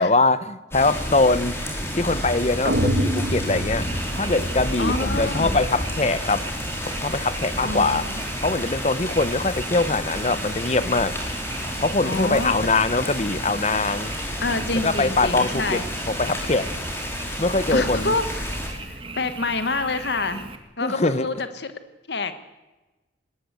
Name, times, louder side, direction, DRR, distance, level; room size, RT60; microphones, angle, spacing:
voice 1, 0.0-1.6 2.0-3.9 4.2-6.4 6.9-8.1 8.4-11.1 11.8-14.1 14.8-15.8 16.1-16.7 17.4-18.1 20.8-21.3, left 3 dB, 35° left, 15 dB, 0.8 m, -22 dB
sound 1, 0.7-18.7, equal, 15° left, 4.4 m, -30 dB
sound 2, 2.6-4.8, equal, 75° right, 1.7 m, -26 dB
Frog, 3.8-20.6, right 3 dB, 30° right, 1.8 m, -38 dB
voice 2, 4.8-5.6 7.6-8.2 12.0-12.5 14.4-15.8 17.7-18.4 18.8-20.5 20.8-21.7 22.1-22.4, left 3 dB, 65° left, 10 dB, 1.5 m, -27 dB
19.5 x 18.5 x 8.2 m, 1.1 s
head